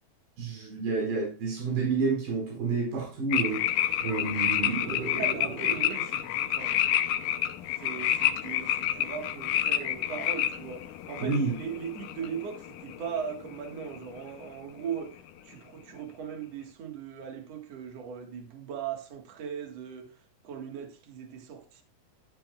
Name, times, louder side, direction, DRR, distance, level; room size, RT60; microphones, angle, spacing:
voice 1, 0.4-5.9 11.2-11.6, right 4 dB, 80° right, 6.9 m, -30 dB
sound 1, 3.3-13.5 13.8-14.2, left 11 dB, 75° left, 2.1 m, -29 dB
voice 2, 5.1-6.8 7.8-20.1 20.4-21.8, right 7 dB, 50° right, 2.3 m, -39 dB
11.5 x 11.0 x 2.3 m
omnidirectional pair, 4.3 m